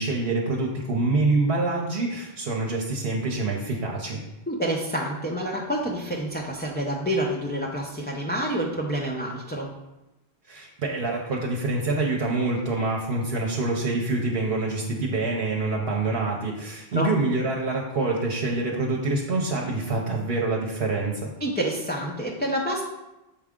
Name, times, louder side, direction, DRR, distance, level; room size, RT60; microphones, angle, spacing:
voice 1, 0.0-4.2 10.5-21.3, right 3 dB, 70° right, -1 dB, 1.0 m, -26 dB
voice 2, 4.5-9.7 16.9-17.1 21.4-22.8, right 1 dB, 10° left, -3 dB, 0.6 m, -28 dB
7.1 x 4.7 x 3.6 m, 0.98 s
omnidirectional pair, 1.0 m